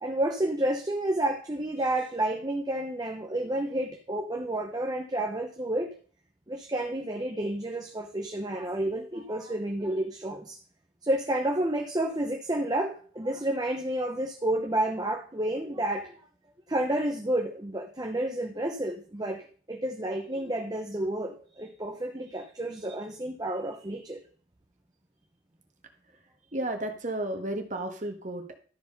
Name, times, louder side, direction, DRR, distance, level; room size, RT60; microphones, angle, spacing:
voice 1, 0.0-5.9 6.5-10.6 11.0-16.1 16.7-24.2, right 1 dB, 20° right, 3 dB, 0.9 m, -30 dB
voice 2, 26.5-28.6, right 1 dB, 40° right, 5 dB, 1.6 m, -33 dB
12.5 x 4.7 x 5.4 m, 0.43 s
head